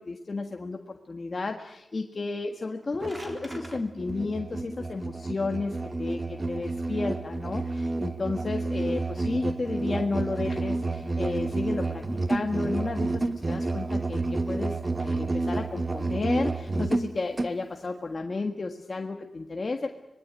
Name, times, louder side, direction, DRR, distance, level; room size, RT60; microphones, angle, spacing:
voice 1, 0.1-19.9, left 3 dB, 45° left, 3 dB, 1.7 m, -32 dB
sound 1, 2.7-3.8, equal, 15° right, 3.9 m, -45 dB
Musical instrument, 2.9-17.6, right 3 dB, 30° right, 1.3 m, -30 dB
25.5 x 20.5 x 9.5 m, 0.90 s
wide cardioid pair, 80°, 0 cm